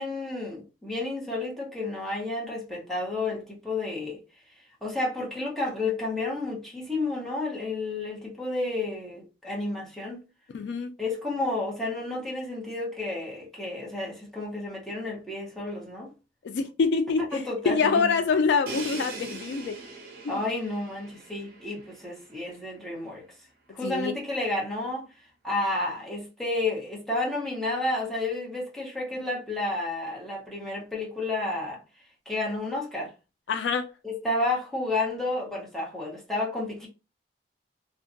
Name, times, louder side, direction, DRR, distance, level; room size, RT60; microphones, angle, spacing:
voice 1, 0.0-4.2 4.8-10.2 11.0-16.1 17.3-18.1 20.3-23.2 23.7-25.1 25.4-31.8 32.3-33.1 34.0-36.9, left 2 dB, ahead, 0.8 m, -31 dB
voice 2, 10.5-10.9 16.4-19.8 20.2-20.4 23.8-24.2 33.5-33.9, left 5 dB, 70° left, 0.3 m, -26 dB
Crash cymbal, 18.7-22.5, right 3 dB, 55° right, 0.8 m, -41 dB
2.5 x 2.2 x 2.5 m
head